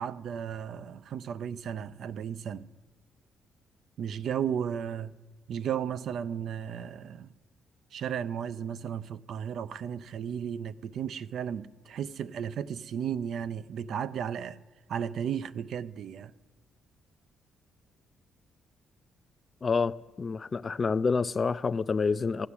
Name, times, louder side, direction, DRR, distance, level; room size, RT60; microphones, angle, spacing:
voice 1, 0.0-2.7 4.0-5.1 5.5-7.3 7.9-14.6 14.9-16.3, right 8 dB, 70° right, 0.5 m, -34 dB
voice 2, 19.6-22.5, left 4 dB, 35° left, 0.4 m, -28 dB
16.0 x 5.9 x 9.8 m
cardioid pair, 90°, 0 cm